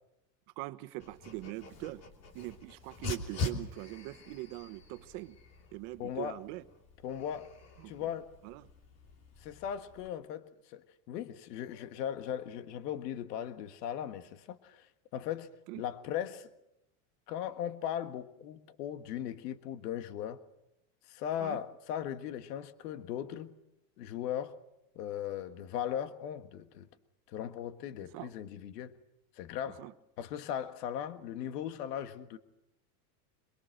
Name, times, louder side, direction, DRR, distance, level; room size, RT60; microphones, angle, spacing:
voice 1, 0.6-2.0 2.3-5.4 5.7-6.6 7.8-7.9 8.4-8.7 15.7-15.8 21.4-21.6 28.1-28.3 29.8-29.9, right 19 dB, 55° right, 1.3 m, -42 dB
Dog, 1.0-10.1, left 3 dB, 30° left, 3.1 m, -44 dB
voice 2, 6.0-6.4 7.0-7.6 7.8-8.3 9.4-16.5 17.3-20.4 21.1-23.5 24.0-24.6 24.9-26.9 27.3-28.9 29.3-29.8 30.2-32.4, left 10 dB, 80° left, 1.6 m, -38 dB
24.5 x 23.0 x 6.5 m
supercardioid pair, 155°, 47 cm